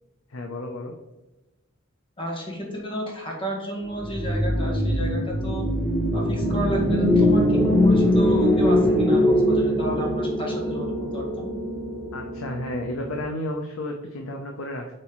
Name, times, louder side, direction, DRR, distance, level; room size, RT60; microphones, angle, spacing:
voice 1, 0.3-0.9 12.1-14.9, left 1 dB, 85° left, 2 dB, 0.7 m, -32 dB
voice 2, 2.2-5.7 6.1-11.5, equal, 25° left, -2 dB, 1.6 m, -32 dB
sound 1, 4.0-12.4, left 1 dB, 10° left, 0.8 m, -22 dB
Piano, 6.3-13.2, right 2 dB, 30° right, 1.2 m, -36 dB
7.6 x 4.3 x 3.1 m, 1.1 s
head